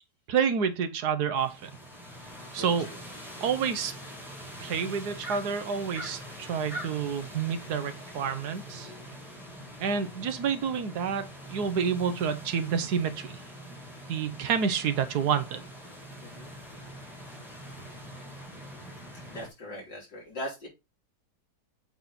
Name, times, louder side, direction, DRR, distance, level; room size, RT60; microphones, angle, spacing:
voice 1, 0.3-1.7 2.5-2.9 3.4-3.9 4.6-8.9 9.8-13.4 14.1-15.6, right 7 dB, 65° right, 1.5 m, -29 dB
sound 1, 1.3-19.5, equal, ahead, 2.7 m, -44 dB
voice 2, 2.5-3.0 16.2-16.5 19.3-20.7, equal, 75° left, 4.9 m, -40 dB
8.0 x 4.3 x 4.2 m
omnidirectional pair, 1.9 m